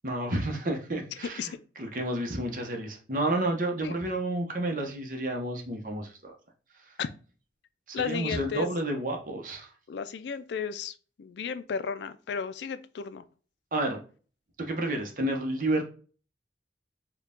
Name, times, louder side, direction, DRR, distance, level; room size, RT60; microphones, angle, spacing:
voice 1, 0.0-1.5 1.8-6.3 7.9-9.7 13.7-14.0 14.6-15.8, right 1 dB, 50° right, 0.9 m, -30 dB
voice 2, 7.9-8.7 9.9-13.2, left 6 dB, 75° left, 0.3 m, -34 dB
4.4 x 2.3 x 3.6 m
head